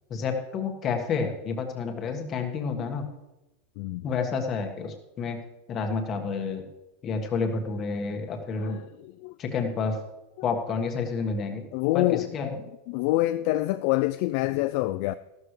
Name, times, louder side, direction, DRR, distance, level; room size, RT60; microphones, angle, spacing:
voice 1, 0.1-3.1 4.0-5.4 5.7-6.7 7.0-8.8 9.4-10.0 10.4-11.7 11.9-12.6, left 5 dB, 25° left, 1.5 m, -29 dB
voice 2, 9.0-9.4 11.7-12.3 12.9-15.1, left 17 dB, 45° left, 0.3 m, -26 dB
14.5 x 12.5 x 3.2 m
supercardioid pair, 170°, 0 cm